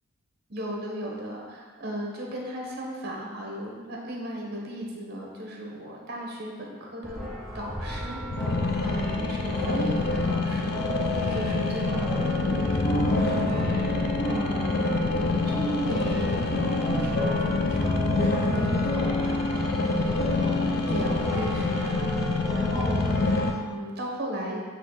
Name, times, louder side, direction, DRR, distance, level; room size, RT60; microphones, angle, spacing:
voice 1, 0.5-7.3 7.5-14.7 15.1-16.3 16.7-20.1 20.3-22.1 22.5-24.6, equal, 45° right, -1 dB, 1.1 m, -36 dB
sound 1, 7.0-23.6, left 2 dB, ahead, 0.5 m, -36 dB
sound 2, 8.3-23.5, left 3 dB, 45° left, 0.4 m, -27 dB
sound 3, 12.0-21.2, left 1 dB, 25° left, 1.0 m, -32 dB
7.8 x 3.0 x 4.0 m, 1.5 s
head